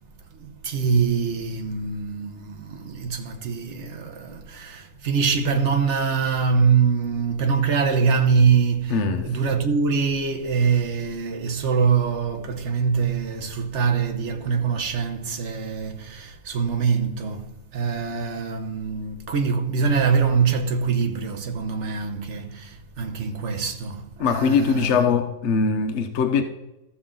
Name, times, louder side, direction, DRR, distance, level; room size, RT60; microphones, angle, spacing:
voice 1, 0.4-25.1, right 5 dB, 45° right, 1.0 m, -24 dB
voice 2, 8.9-9.3 24.2-26.4, left 5 dB, 70° left, 0.6 m, -21 dB
14.0 x 6.3 x 3.8 m
omnidirectional pair, 2.1 m